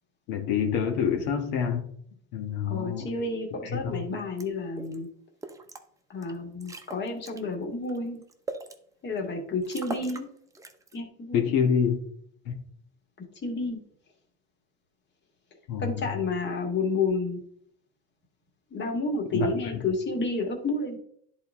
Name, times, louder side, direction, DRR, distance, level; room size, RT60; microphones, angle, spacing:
voice 1, 0.3-1.9 2.3-3.1 3.7-4.0 11.3-12.0 12.4-12.5 15.7-16.0 19.3-19.5, left 7 dB, 80° left, 1.5 m, -26 dB
voice 2, 2.7-5.1 6.1-8.2 9.0-10.3 10.9-11.5 13.2-13.8 15.8-17.4 18.7-21.0, left 3 dB, 35° left, 2.0 m, -30 dB
sound 1, 4.4-4.5 4.8-5.0 5.4-5.8 6.2-6.3 6.6-7.4 7.9-8.8 9.2-9.3 9.6-10.3 10.6-11.0, right 3 dB, 10° right, 0.7 m, -39 dB
10.5 x 4.1 x 3.6 m
cardioid pair, 120°, 30 cm